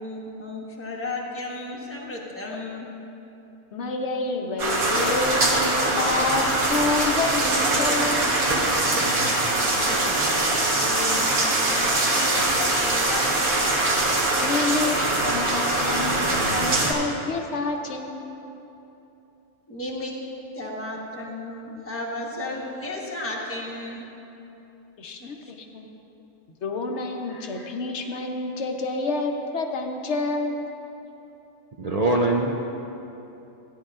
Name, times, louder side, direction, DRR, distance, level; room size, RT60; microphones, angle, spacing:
voice 1, 0.0-2.9 9.6-13.4 19.7-20.1 20.5-24.0 25.0-25.3, left 2 dB, 10° left, -3 dB, 1.1 m, -34 dB
voice 2, 3.7-8.3 10.5-10.7 14.4-15.0 15.2-18.2 25.0-25.9 26.6-30.7, left 3 dB, 55° left, 3 dB, 1.1 m, -28 dB
sound 1, 4.6-16.9, right 2 dB, 85° right, 1.7 m, -22 dB
voice 3, 27.3-27.7 31.8-32.7, right 2 dB, 65° right, -1 dB, 0.4 m, -24 dB
15.5 x 10.0 x 2.5 m, 2.9 s
omnidirectional pair, 1.5 m